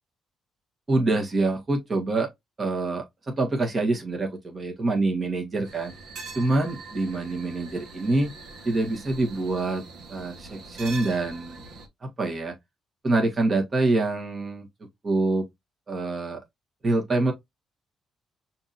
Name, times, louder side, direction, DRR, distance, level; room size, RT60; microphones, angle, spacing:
voice 1, 0.9-2.3 2.6-5.9 6.3-8.3 8.6-9.8 10.1-11.6 12.2-12.5 13.0-14.7 15.0-15.5 15.9-16.4 16.8-17.3, right 2 dB, 30° right, 1.6 m, -25 dB
sound 1, 5.6-11.9, right 3 dB, 70° right, 1.2 m, -42 dB
5.9 x 2.8 x 2.6 m
cardioid pair, 90°, 0 cm